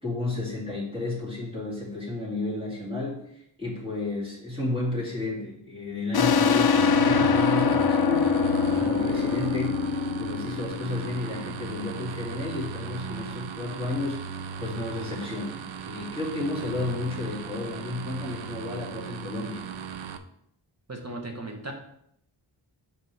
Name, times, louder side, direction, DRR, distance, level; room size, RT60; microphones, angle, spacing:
voice 1, 0.0-9.8 10.2-19.7, left 2 dB, 10° right, -6 dB, 2.9 m, -32 dB
sound 1, 6.1-11.5, left 5 dB, 50° left, 0.6 m, -23 dB
sound 2, 6.8-20.2, right 6 dB, 70° right, 0.6 m, -37 dB
voice 2, 20.9-21.7, right 2 dB, 30° right, 2 dB, 1.2 m, -36 dB
6.7 x 5.4 x 3.5 m, 0.73 s
wide cardioid pair, 80°, 48 cm